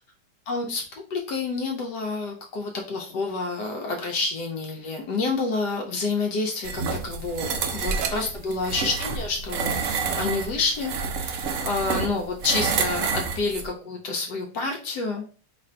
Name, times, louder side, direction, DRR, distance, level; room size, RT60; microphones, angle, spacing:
voice 1, 0.5-0.8 1.1-15.3, left 3 dB, 75° left, 1 dB, 1.3 m, -28 dB
sound 1, 6.6-13.7, right 5 dB, 70° right, 0.7 m, -28 dB
3.1 x 2.5 x 4.3 m, 0.39 s
omnidirectional pair, 1.8 m